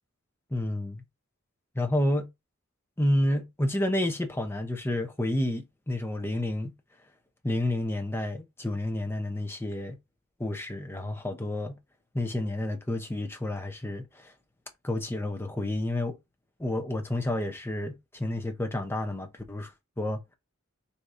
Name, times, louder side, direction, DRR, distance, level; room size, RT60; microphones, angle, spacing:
voice 1, 0.5-1.0 1.7-2.2 3.0-6.7 7.4-10.0 10.4-11.7 12.1-14.3 14.8-16.1 16.6-19.7 20.0-20.2, left 1 dB, 10° left, 0.7 m, -30 dB
3.8 x 2.8 x 4.8 m
head